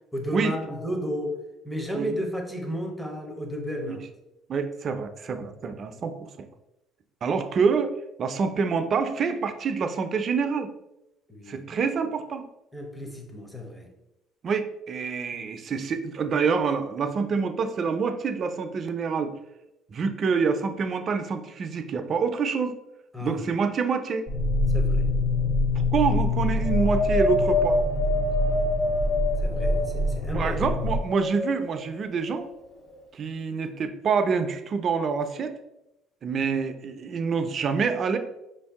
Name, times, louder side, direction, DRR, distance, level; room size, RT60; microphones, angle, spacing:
voice 1, 0.1-4.1 11.3-11.7 12.7-13.9 23.1-23.5 24.7-25.1 29.4-30.8, equal, 5° left, 2 dB, 0.7 m, -33 dB
voice 2, 4.5-6.5 7.2-7.9 8.2-10.7 11.5-12.5 14.4-19.4 19.9-22.7 23.2-24.3 25.9-27.8 30.3-32.5 33.1-35.5 36.2-38.2, right 5 dB, 40° right, 7 dB, 0.4 m, -26 dB
sound 1, 24.3-31.0, left 1 dB, 50° left, 0.6 m, -25 dB
Wind, 26.6-30.1 30.7-31.8 32.5-32.6, left 2 dB, 80° left, 1.6 m, -26 dB
5.0 x 2.6 x 3.5 m, 0.91 s
cardioid pair, 115°, 0 cm